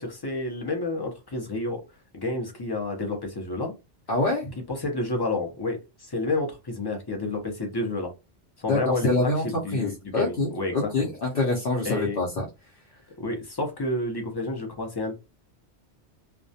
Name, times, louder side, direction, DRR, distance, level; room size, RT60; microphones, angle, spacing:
voice 1, 0.0-1.8 2.1-3.7 4.6-8.1 8.6-10.9 11.8-12.2 13.2-15.2, left 2 dB, 35° left, 1 dB, 0.4 m, -30 dB
voice 2, 4.1-4.5 8.7-9.4 9.7-12.4, left 2 dB, 60° left, -4 dB, 0.8 m, -25 dB
2.3 x 2.1 x 2.6 m, 0.26 s
omnidirectional pair, 1.2 m